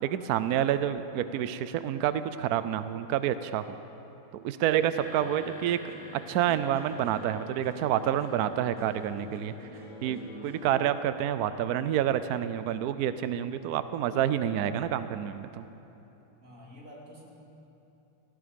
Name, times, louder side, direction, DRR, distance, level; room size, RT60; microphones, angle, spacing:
voice 1, 0.0-3.6 4.3-5.8 6.3-9.5 10.0-15.6, right 10 dB, 80° right, 12 dB, 0.8 m, -28 dB
sound 1, 4.9-11.3, right 1 dB, 30° left, 4.6 m, -50 dB
sound 2, 5.9-14.3 14.7-15.3, left 1 dB, 55° left, 3.1 m, -48 dB
voice 2, 16.4-17.2, equal, 40° right, -4 dB, 3.2 m, -48 dB
17.5 x 15.0 x 5.2 m, 3.0 s
omnidirectional pair, 2.2 m